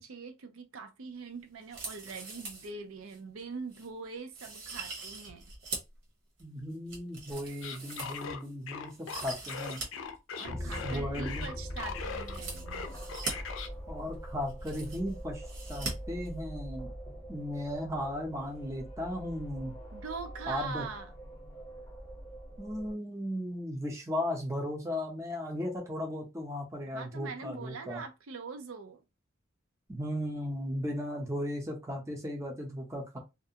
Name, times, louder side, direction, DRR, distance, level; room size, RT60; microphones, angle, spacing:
voice 1, 0.0-5.4 10.4-13.1 19.9-21.1 26.9-29.0, right 4 dB, 85° right, 0.5 m, -43 dB
sound 1, 1.6-2.7 3.1-3.2 3.7-3.9 4.3-6.0 6.4-8.5 8.9-9.9 10.1-10.2 12.2-13.3 14.1-14.2 14.4-15.1 15.5-15.9 16.2-16.3, right 3 dB, 60° right, 1.0 m, -41 dB
voice 2, 6.4-9.8 10.8-11.5 13.9-16.9 17.3-19.7 20.5-20.9 22.6-28.0 29.9-33.2, left 1 dB, 15° right, 0.5 m, -36 dB
sound 2, 7.6-12.4 12.7-13.7, left 6 dB, 65° left, 0.4 m, -40 dB
sound 3, 10.4-22.9, equal, 15° left, 0.8 m, -43 dB
2.4 x 2.1 x 2.7 m
head